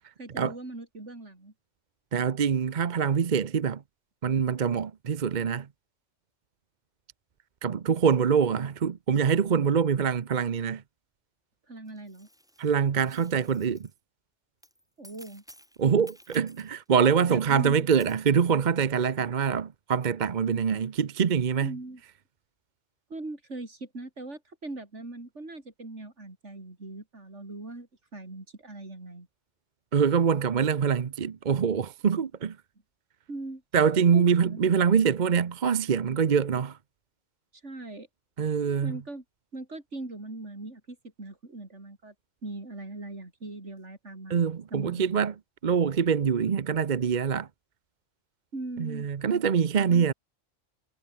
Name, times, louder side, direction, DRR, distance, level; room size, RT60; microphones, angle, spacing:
voice 1, 0.2-1.5 11.7-12.3 15.0-15.4 17.3-17.9 21.6-22.0 23.1-29.3 33.3-33.6 34.1-34.7 37.6-38.1 38.8-39.2 39.5-42.1 42.4-45.1 48.5-49.1 49.9-50.1, right 2 dB, 65° right, 4.9 m, -40 dB
voice 2, 2.1-3.8 4.2-5.7 7.6-10.8 12.6-13.9 15.8-21.7 29.9-32.6 33.7-36.8 38.4-38.9 44.3-45.3 45.6-47.5 48.8-50.1, right 7 dB, 40° right, 0.8 m, -24 dB
sound 1, 11.9-14.0 14.6-16.9 18.0-18.3, equal, 5° right, 7.8 m, -55 dB
omnidirectional pair, 1.3 m